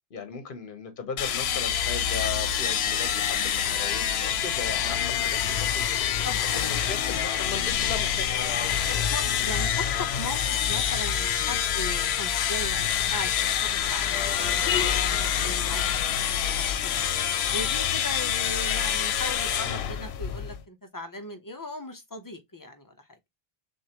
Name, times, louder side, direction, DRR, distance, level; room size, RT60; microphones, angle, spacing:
voice 1, 0.1-5.8 6.5-8.6, left 5 dB, 60° left, 1.1 m, -37 dB
sound 1, 1.2-20.6, left 9 dB, 90° left, 0.8 m, -26 dB
voice 2, 6.2-6.6 8.6-15.8 16.1-17.0 17.5-23.2, left 1 dB, 25° left, 0.6 m, -38 dB
6.3 x 2.5 x 2.8 m
omnidirectional pair, 1.0 m